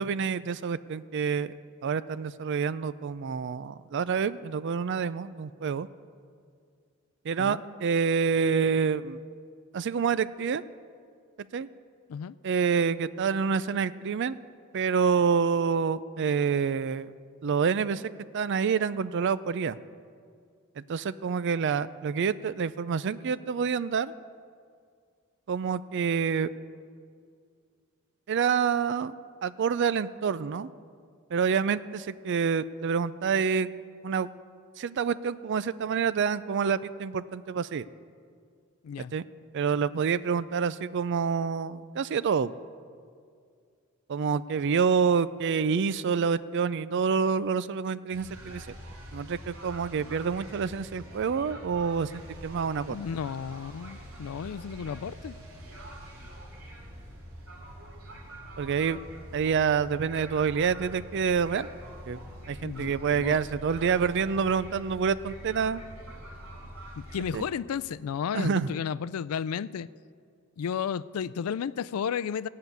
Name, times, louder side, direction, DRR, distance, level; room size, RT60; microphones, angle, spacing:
voice 1, 0.0-1.5 1.8-5.9 7.2-9.2 9.7-10.6 11.5-11.7 12.4-14.4 14.7-17.1 17.4-19.8 20.8-24.1 25.5-26.5 28.3-29.1 29.4-30.7 31.3-33.7 34.0-34.3 34.8-37.9 39.0-39.2 39.5-42.5 44.1-48.7 49.1-53.0 58.6-59.0 59.3-61.7 62.1-62.2 62.5-65.8 67.3-67.5 68.3-68.7, right 6 dB, 55° right, 16 dB, 0.4 m, -27 dB
sound 1, 48.1-67.4, right 1 dB, 75° right, 2.8 m, -45 dB
voice 2, 52.9-55.4 62.6-63.4 67.0-69.9 70.6-72.5, left 7 dB, 90° left, 18 dB, 0.4 m, -33 dB
16.5 x 5.7 x 9.2 m, 2.2 s
head